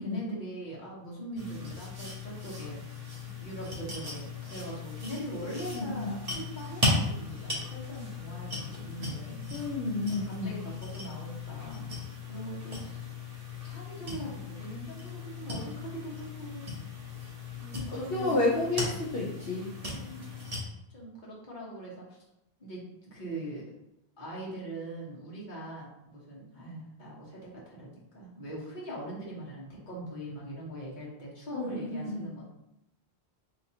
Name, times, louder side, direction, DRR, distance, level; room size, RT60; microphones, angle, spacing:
voice 1, 0.0-2.8 3.4-9.5 10.1-11.9 12.3-13.0 13.6-16.7 17.7-18.5 19.9-20.3 20.9-22.2 22.6-23.7 24.2-27.9 28.1-32.5, right 1 dB, 45° left, -6 dB, 1.3 m, -41 dB
sound 1, 1.4-20.6, left 3 dB, 40° right, 0.9 m, -37 dB
voice 2, 5.7-6.2 9.5-10.6 17.6-17.8 18.1-19.6 31.5-32.3, left 2 dB, 65° left, -5 dB, 0.9 m, -31 dB
3.9 x 2.8 x 2.7 m, 0.85 s
omnidirectional pair, 1.1 m